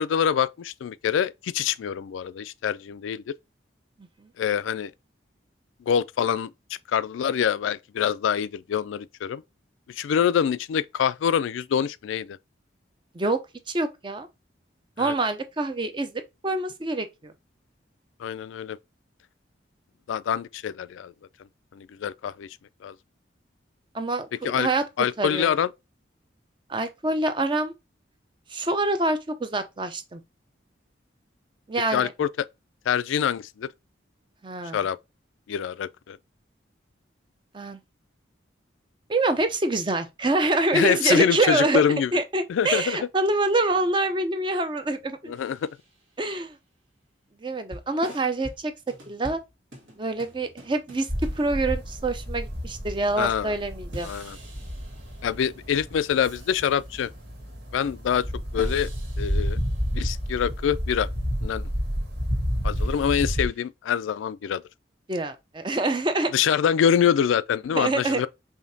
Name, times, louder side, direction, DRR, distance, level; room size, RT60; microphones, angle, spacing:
voice 1, 0.0-3.3 4.4-4.9 5.9-6.5 6.9-9.4 10.0-12.4 15.0-15.1 18.2-18.8 20.1-21.1 21.8-22.5 22.8-22.9 24.4-24.7 25.0-25.7 31.9-32.3 32.9-33.7 34.7-35.0 35.5-36.2 40.7-42.1 42.5-43.0 45.3-45.6 53.2-53.5 54.0-54.4 55.2-57.1 57.7-58.2 58.5-58.9 59.2-59.6 59.9-61.1 61.4-61.6 62.6-64.6 66.3-68.3, left 8 dB, 85° left, 0.3 m, -25 dB
voice 2, 13.7-14.3 15.0-17.3 23.9-24.8 25.2-25.5 26.7-27.7 28.5-30.2 31.7-32.1 34.4-34.8 37.5-37.8 39.1-41.8 42.1-45.3 46.2-46.6 47.4-48.7 49.1-49.4 50.0-54.1 65.1-66.3 67.7-68.3, right 2 dB, 25° right, 0.5 m, -26 dB
sound 1, 45.3-46.3 47.7-52.7 53.9-55.7 56.2-57.1 58.6-60.3 62.8-63.7, equal, 80° right, 1.6 m, -46 dB
sound 2, 51.1-63.5, equal, 65° right, 1.8 m, -31 dB
5.0 x 2.8 x 2.6 m
head